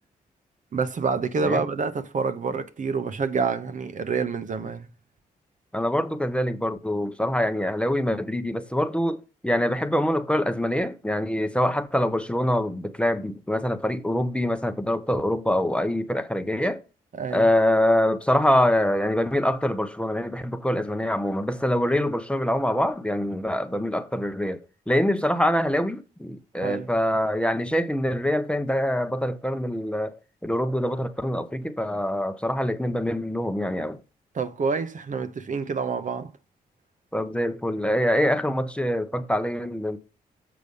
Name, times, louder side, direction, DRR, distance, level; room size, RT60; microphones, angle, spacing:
voice 1, 0.7-4.9 17.2-17.4 26.6-26.9 34.3-36.3, right 5 dB, 50° right, 0.9 m, -27 dB
voice 2, 5.7-16.8 17.3-30.1 30.4-34.0 37.1-40.0, left 1 dB, 5° left, 0.8 m, -25 dB
6.8 x 5.0 x 5.4 m
supercardioid pair, 60°, 17 cm